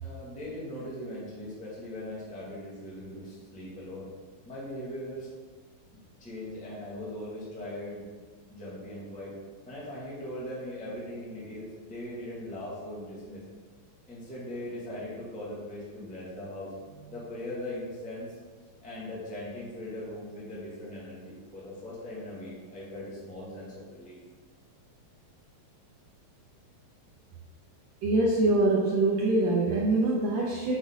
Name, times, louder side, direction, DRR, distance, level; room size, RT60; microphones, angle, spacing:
voice 1, 0.0-4.1 4.4-5.3 5.9-8.1 8.5-9.3 9.6-13.4 14.1-18.3 18.8-24.2, left 1 dB, 5° left, -7 dB, 1.1 m, -40 dB
voice 2, 28.0-30.7, right 2 dB, 80° right, -3 dB, 1.5 m, -24 dB
6.9 x 6.3 x 3.8 m, 1.4 s
omnidirectional pair, 4.1 m